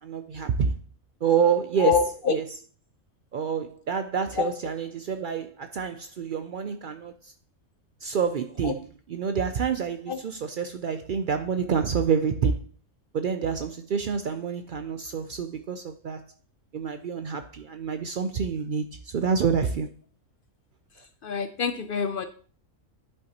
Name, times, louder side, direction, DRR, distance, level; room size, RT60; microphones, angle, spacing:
voice 1, 0.0-0.8 1.2-2.6 3.3-7.3 8.0-12.7 13.1-16.3 16.7-19.9, right 6 dB, 70° right, 0.5 m, -28 dB
voice 2, 21.2-22.3, left 6 dB, 55° left, 0.6 m, -25 dB
11.0 x 5.5 x 2.8 m
omnidirectional pair, 1.4 m